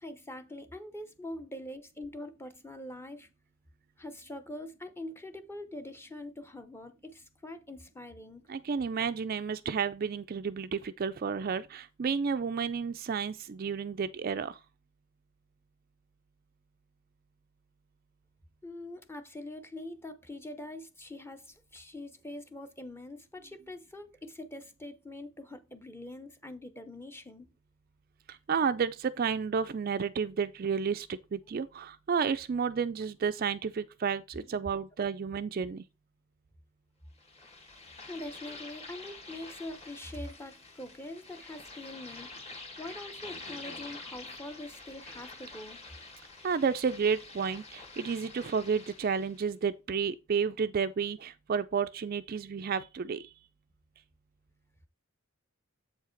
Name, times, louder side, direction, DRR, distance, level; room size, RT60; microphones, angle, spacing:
voice 1, 0.0-3.3 4.0-8.5 18.6-27.5 38.1-42.4 42.8-45.8, left 1 dB, 10° left, 0.7 m, -44 dB
voice 2, 8.5-14.6 28.3-35.8 46.4-53.3, right 6 dB, 40° right, 0.3 m, -31 dB
sound 1, 37.2-49.4, left 3 dB, 30° left, 1.7 m, -47 dB
7.7 x 4.7 x 4.4 m
head